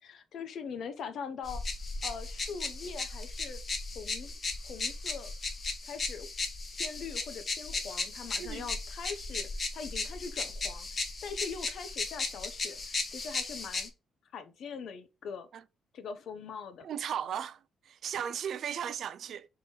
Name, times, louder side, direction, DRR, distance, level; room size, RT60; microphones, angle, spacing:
voice 1, 0.0-1.6 2.0-3.6 3.9-4.4 4.6-5.3 5.8-6.3 6.7-13.9 14.3-15.5 15.9-16.9, left 6 dB, 65° left, 0.7 m, -42 dB
sound 1, 1.5-13.9, left 3 dB, 40° left, 1.0 m, -36 dB
voice 2, 16.8-17.6 17.9-19.5, right 8 dB, 65° right, 0.4 m, -36 dB
3.7 x 3.1 x 4.2 m
cardioid pair, 90°, 0 cm